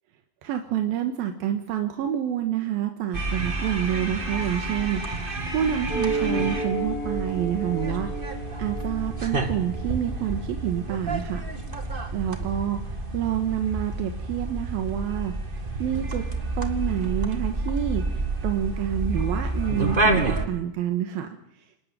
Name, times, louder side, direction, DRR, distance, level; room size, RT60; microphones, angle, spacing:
voice 1, 0.4-5.0 5.5-8.1 8.6-11.4 12.1-12.8 13.1-15.3 15.8-16.2 16.6-18.0 18.4-21.3, right 10 dB, 85° right, 5 dB, 3.2 m, -27 dB
sound 1, 3.1-20.5, right 2 dB, 25° right, 1.2 m, -29 dB
sound 2, 5.9-10.8, right 2 dB, 25° left, 5.6 m, -32 dB
28.0 x 12.5 x 8.9 m, 0.82 s
omnidirectional pair, 4.1 m